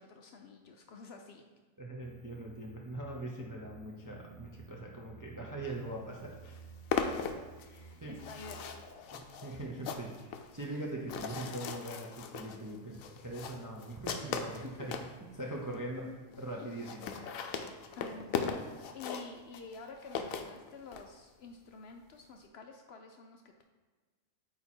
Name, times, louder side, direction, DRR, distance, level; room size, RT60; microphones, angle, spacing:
voice 1, 0.0-1.4 7.0-8.8 14.5-14.9 15.6-15.8 16.5-16.7 17.9-23.6, left 4 dB, 65° left, 4 dB, 0.7 m, -50 dB
voice 2, 1.8-6.6 8.0-8.2 9.1-14.9 15.3-16.1 16.4-17.3, right 1 dB, 30° right, -2 dB, 0.4 m, -42 dB
sound 1, 2.0-8.9, right 5 dB, 90° right, 1.2 m, -55 dB
sound 2, 5.9-6.0 6.3-15.1 15.7-15.8 16.0-16.1 16.3-16.4 16.7-21.0, left 6 dB, 90° left, 1.0 m, -38 dB
8.4 x 2.9 x 4.3 m, 1.4 s
omnidirectional pair, 1.4 m